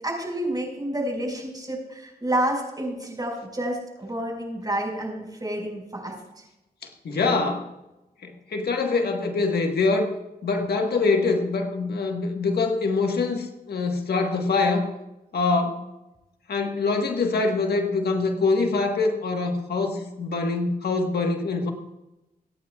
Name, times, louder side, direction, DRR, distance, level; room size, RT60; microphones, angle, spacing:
voice 1, 0.0-6.4, right 1 dB, 25° right, 1 dB, 5.1 m, -29 dB
voice 2, 7.0-7.7 8.2-10.1 10.4-14.9 15.3-15.8 16.5-21.7, left 3 dB, 75° left, 3 dB, 1.5 m, -24 dB
24.0 x 9.5 x 2.4 m, 0.97 s
cardioid pair, 60°, 16 cm